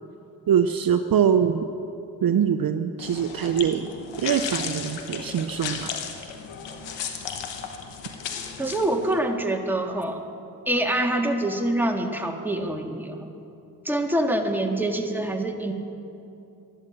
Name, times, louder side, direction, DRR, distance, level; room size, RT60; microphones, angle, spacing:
voice 1, 0.5-1.6 2.2-3.9 4.2-6.0, right 8 dB, 55° right, 8 dB, 0.7 m, -23 dB
sound 1, 3.0-9.2, left 7 dB, 90° left, 1.2 m, -35 dB
voice 2, 8.6-10.2 10.7-13.3 13.9-15.7, right 1 dB, 5° right, 2 dB, 1.8 m, -25 dB
13.0 x 11.5 x 7.7 m, 2.8 s
supercardioid pair, 50°, 42 cm